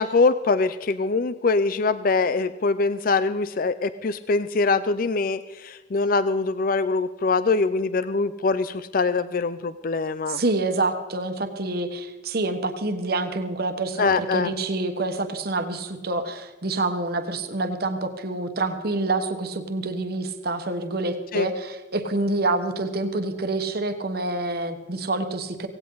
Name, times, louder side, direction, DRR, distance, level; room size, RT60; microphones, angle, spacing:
voice 1, 0.0-10.4 14.0-14.5 21.3-21.5, left 4 dB, 45° left, 14 dB, 0.5 m, -23 dB
voice 2, 10.3-25.7, right 2 dB, 55° right, 7 dB, 1.3 m, -27 dB
17.5 x 17.0 x 3.9 m, 1.1 s
head